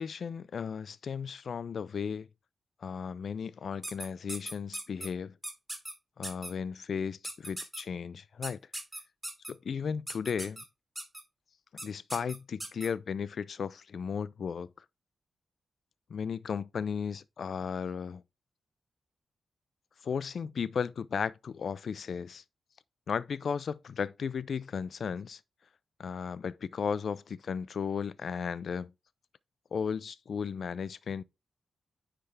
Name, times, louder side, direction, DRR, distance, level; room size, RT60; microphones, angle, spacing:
voice 1, 0.0-2.3 2.8-5.3 6.2-8.6 9.5-10.6 11.8-14.7 16.1-18.2 20.0-22.4 23.1-25.4 26.0-28.9 29.7-31.2, left 6 dB, 65° left, 0.3 m, -35 dB
sound 1, 3.8-5.1 5.4-5.9 6.2-6.5 7.2-7.8 8.4-9.5 10.1-10.6 11.0-11.2 11.8-11.9 12.1-12.9, right 1 dB, 15° right, 2.2 m, -38 dB
9.5 x 3.4 x 3.3 m
cardioid pair, 75°, 0 cm